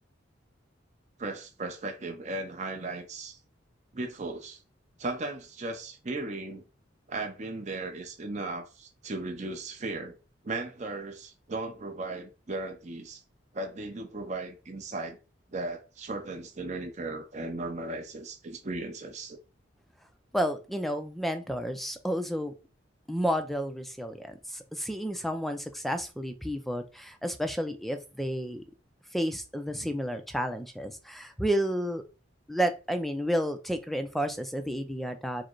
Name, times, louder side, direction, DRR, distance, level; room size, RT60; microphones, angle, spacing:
voice 1, 1.2-3.4 3.9-4.6 5.0-6.6 7.1-10.2 10.4-13.2 13.5-15.2 15.5-19.4, right 2 dB, 35° right, 0.7 m, -36 dB
voice 2, 20.3-22.5 23.1-28.6 29.1-32.0 32.5-35.4, equal, ahead, 0.4 m, -31 dB
4.8 x 2.1 x 4.5 m
head